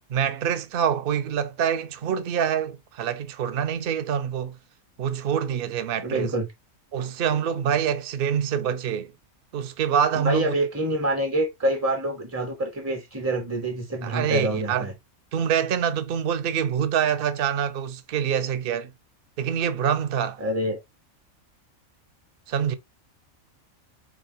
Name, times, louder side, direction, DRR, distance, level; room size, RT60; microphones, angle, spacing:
voice 1, 0.1-4.6 5.0-6.3 6.9-9.1 9.5-10.5 14.0-14.9 15.3-18.9 19.4-20.4 22.5-22.7, right 8 dB, 50° right, 0.7 m, -25 dB
voice 2, 6.0-6.5 10.1-14.9 20.4-20.8, right 1 dB, 15° right, 0.7 m, -26 dB
5.0 x 4.1 x 2.6 m
omnidirectional pair, 1.4 m